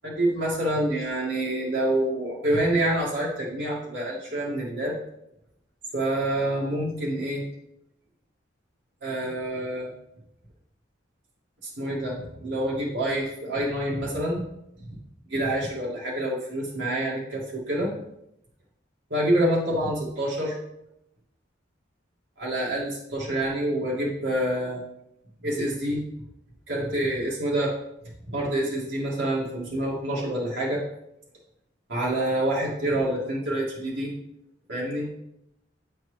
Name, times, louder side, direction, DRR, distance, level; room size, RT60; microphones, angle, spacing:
voice 1, 0.0-4.9 5.9-7.4 9.0-9.9 11.6-14.4 14.9-15.0 15.3-17.9 19.1-20.6 22.4-24.8 25.4-26.1 26.7-27.7 28.3-30.8 31.9-34.1 34.7-35.1, right 1 dB, 80° right, -6 dB, 1.9 m, -27 dB
8.5 x 4.4 x 3.2 m, 0.81 s
head